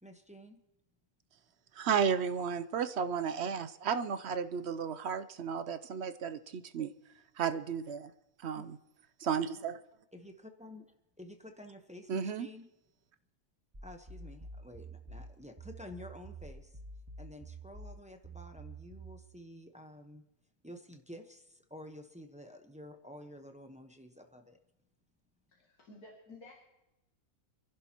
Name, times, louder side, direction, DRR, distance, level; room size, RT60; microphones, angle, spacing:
voice 1, 0.0-0.6 8.5-8.6 10.1-10.9 11.2-12.7 13.8-16.8 17.2-20.3 20.6-24.6, left 1 dB, 5° right, 5 dB, 0.8 m, -50 dB
voice 2, 1.7-6.9 7.4-8.1 8.4-8.8 9.2-9.8 12.1-12.5, right 7 dB, 60° right, 12 dB, 0.8 m, -33 dB
sound 1, 13.7-19.2, right 3 dB, 20° right, 2.1 m, -48 dB
voice 3, 25.5-26.5, left 2 dB, 80° left, -2 dB, 2.9 m, -53 dB
27.5 x 11.0 x 3.0 m, 0.92 s
omnidirectional pair, 1.6 m